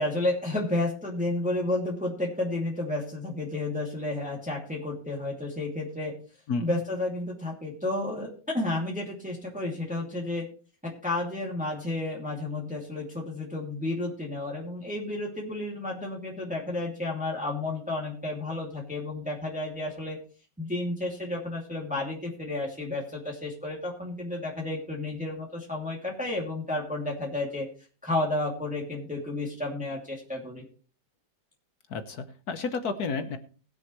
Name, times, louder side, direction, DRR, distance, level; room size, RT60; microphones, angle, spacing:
voice 1, 0.0-6.1 6.6-10.4 10.8-20.2 20.6-27.7 28.0-30.6, left 2 dB, 5° right, -2 dB, 2.4 m, -31 dB
voice 2, 6.5-6.8 31.9-33.4, left 4 dB, 65° left, 8 dB, 1.5 m, -31 dB
20.5 x 7.0 x 3.1 m, 0.38 s
omnidirectional pair, 1.9 m